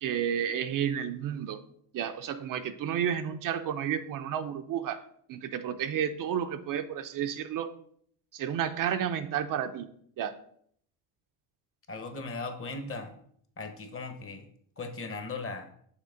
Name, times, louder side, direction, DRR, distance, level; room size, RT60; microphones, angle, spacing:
voice 1, 0.0-1.6 1.9-5.0 5.3-7.7 8.3-9.9 10.2-10.4, right 9 dB, 55° right, 9 dB, 0.6 m, -31 dB
voice 2, 11.9-13.1 13.6-14.5 14.8-15.7, left 3 dB, 35° left, 6 dB, 1.0 m, -38 dB
6.6 x 3.0 x 5.0 m, 0.64 s
cardioid pair, 100°, 40 cm